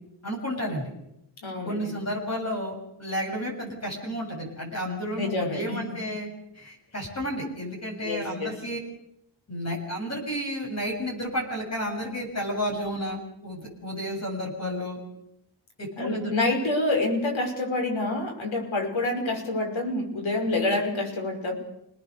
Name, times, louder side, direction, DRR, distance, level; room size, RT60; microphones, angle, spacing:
voice 1, 0.2-0.9 1.6-6.3 6.5-8.8 9.5-15.0 15.8-16.3, equal, 30° left, -1 dB, 7.6 m, -32 dB
voice 2, 1.4-1.9 5.2-6.0 8.0-8.5 16.0-21.5, left 2 dB, 70° left, 2 dB, 5.7 m, -27 dB
29.5 x 19.5 x 6.8 m, 0.80 s
wide cardioid pair, 160°, 49 cm